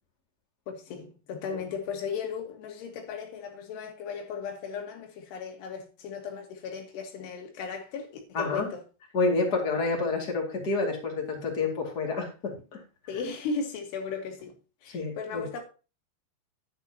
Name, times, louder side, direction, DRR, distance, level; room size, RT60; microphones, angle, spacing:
voice 1, 0.7-8.8 13.1-14.5 14.8-15.6, left 5 dB, 90° left, 3.8 m, -36 dB
voice 2, 8.3-8.7 9.1-12.8 14.9-15.5, left 3 dB, 30° left, 2.4 m, -29 dB
10.5 x 9.6 x 2.9 m
omnidirectional pair, 4.6 m